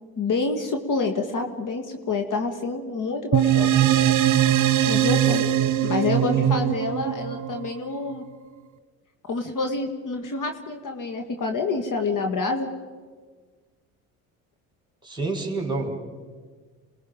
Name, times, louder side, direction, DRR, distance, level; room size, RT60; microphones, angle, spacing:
voice 1, 0.2-3.8 4.9-5.4 5.8-8.2 9.2-12.7, left 4 dB, 50° left, 5 dB, 2.0 m, -27 dB
sound 1, 3.3-8.1, right 11 dB, 45° right, 1.2 m, -21 dB
voice 2, 6.1-6.7 15.0-15.9, right 3 dB, 10° right, 2 dB, 4.7 m, -29 dB
28.0 x 19.5 x 5.2 m, 1.5 s
hypercardioid pair, 70°, 42 cm